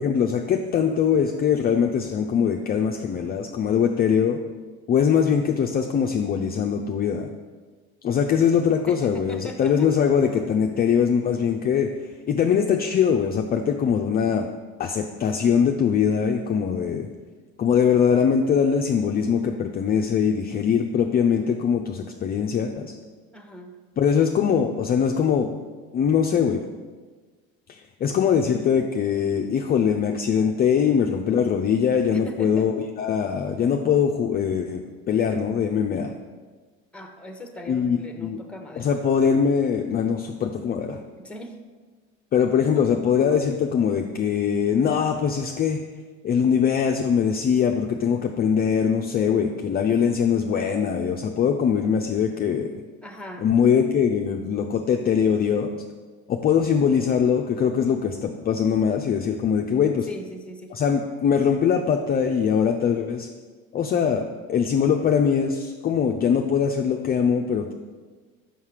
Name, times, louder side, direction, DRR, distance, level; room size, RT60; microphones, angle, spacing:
voice 1, 0.0-4.4 4.9-7.3 8.0-11.9 12.3-14.5 14.8-17.1 17.6-22.9 24.0-25.5 25.9-26.6 27.7-34.8 35.1-36.1 37.7-38.4 38.8-41.0 42.3-45.8 46.2-52.7 53.4-55.8 56.3-60.1 60.7-63.3 63.7-67.7, left 7 dB, 30° left, 3 dB, 0.5 m, -22 dB
voice 2, 8.9-9.9 23.3-23.7 32.1-32.7 36.9-38.9 41.2-41.6 53.0-53.5 60.1-60.7, left 1 dB, 5° left, 5 dB, 0.9 m, -39 dB
5.7 x 5.6 x 4.8 m, 1.4 s
supercardioid pair, 95°, 31 cm